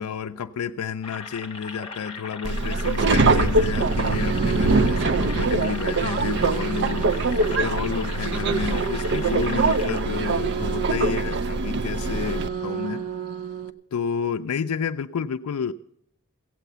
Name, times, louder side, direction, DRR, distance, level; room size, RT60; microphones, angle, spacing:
voice 1, 0.0-13.0 13.9-15.7, left 6 dB, 85° left, 8 dB, 0.4 m, -30 dB
sound 1, 1.0-10.0, left 4 dB, 25° left, 1.9 m, -38 dB
Subway metro underground, 2.4-12.5, right 3 dB, 55° right, 0.5 m, -23 dB
sound 2, 3.7-13.7, right 7 dB, 85° right, 0.8 m, -33 dB
15.5 x 8.2 x 6.7 m, 0.74 s
head